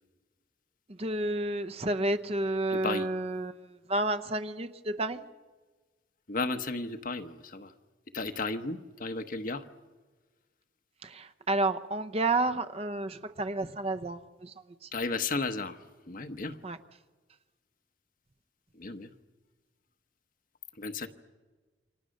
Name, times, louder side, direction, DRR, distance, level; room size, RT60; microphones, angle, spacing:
voice 1, 1.0-5.2 11.0-14.5 14.8-14.9 16.6-16.8, right 2 dB, 35° right, 10 dB, 0.9 m, -31 dB
voice 2, 2.7-3.1 6.3-7.7 8.1-9.6 14.9-15.8 16.1-16.6 18.8-19.1 20.8-21.1, left 3 dB, 50° left, 8 dB, 1.2 m, -34 dB
29.0 x 24.5 x 6.5 m, 1.3 s
head